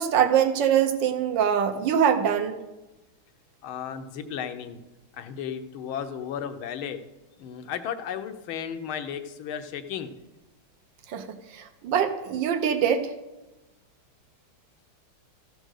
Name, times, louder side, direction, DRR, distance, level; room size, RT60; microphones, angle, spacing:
voice 1, 0.0-2.6 11.1-11.3 11.5-13.1, right 8 dB, 65° right, 8 dB, 1.5 m, -23 dB
voice 2, 3.6-4.8 5.1-7.0 7.4-10.1, left 8 dB, 75° left, 9 dB, 1.6 m, -34 dB
14.5 x 5.2 x 6.4 m, 1.0 s
omnidirectional pair, 2.3 m